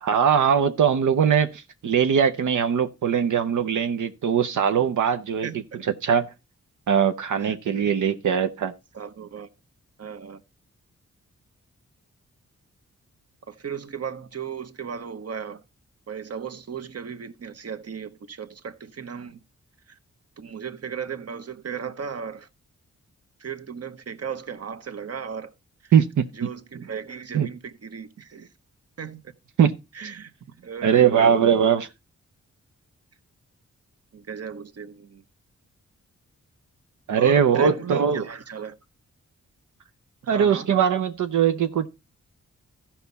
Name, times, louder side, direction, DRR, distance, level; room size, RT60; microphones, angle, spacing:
voice 1, 0.0-5.5 6.0-6.3 6.9-8.7 25.9-26.5 27.3-27.5 29.6-29.8 30.8-31.9 37.1-38.3 40.3-41.9, right 7 dB, 85° right, 0.7 m, -21 dB
voice 2, 5.4-5.8 7.4-7.6 8.9-9.5 10.0-10.4 13.5-15.6 16.1-19.4 19.9-20.0 20.4-22.5 23.4-25.5 25.8-25.9 26.3-28.5 29.0-29.3 29.9-31.3 34.1-35.2 37.2-38.7 40.2-40.7, right 7 dB, 55° right, 1.0 m, -36 dB
14.5 x 5.7 x 4.0 m
cardioid pair, 70°, 30 cm